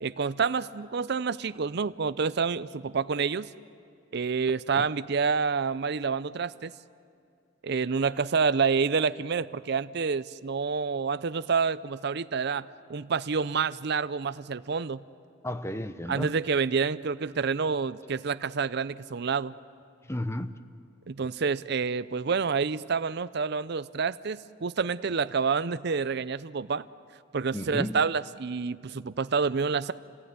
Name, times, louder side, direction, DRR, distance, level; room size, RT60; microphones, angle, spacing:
voice 1, 0.0-3.5 4.1-6.7 7.6-15.0 16.1-19.5 21.1-26.8 27.3-29.9, right 5 dB, 55° right, 14 dB, 0.5 m, -28 dB
voice 2, 15.4-16.4 20.0-20.6 27.5-28.0, left 1 dB, 15° left, 11 dB, 0.8 m, -33 dB
27.5 x 18.5 x 9.5 m, 2.4 s
head